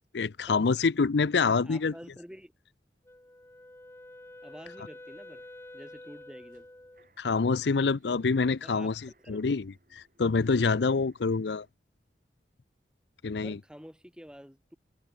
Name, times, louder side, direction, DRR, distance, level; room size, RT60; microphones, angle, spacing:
voice 1, 0.1-1.9 7.2-9.0 9.3-9.7 9.9-11.7 13.2-13.6, left 4 dB, 80° left, 0.6 m, -26 dB
voice 2, 1.5-2.5 4.4-5.4 5.7-6.7 8.6-8.9 9.2-9.5 13.4-14.8, equal, 5° right, 4.0 m, -48 dB
Wind instrument woodwind instrument, 3.0-7.1, left 1 dB, 15° left, 0.7 m, -49 dB
sound 1, 5.3-11.7, right 2 dB, 50° right, 8.0 m, -68 dB
head